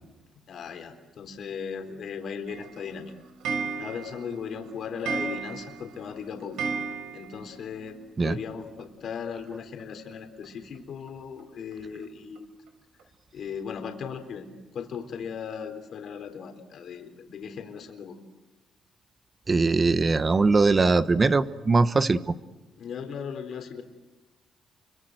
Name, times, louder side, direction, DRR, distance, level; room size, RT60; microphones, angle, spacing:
voice 1, 0.5-3.1 3.8-6.7 7.1-8.0 8.2-12.5 13.3-14.5 14.7-18.2 22.8-23.8, left 6 dB, 65° left, 5 dB, 3.7 m, -37 dB
Clock, 2.5-7.6 7.9-8.0 8.2-8.3 8.5-8.6 9.8-9.9 10.4-10.5 11.1-11.2 11.7-11.8 12.4-12.5 13.0-13.1, right 5 dB, 90° right, 5.1 m, -34 dB
voice 2, 19.5-22.2, right 3 dB, 30° right, 12 dB, 1.2 m, -21 dB
30.0 x 24.5 x 7.9 m, 1.2 s
cardioid pair, 90°, 0 cm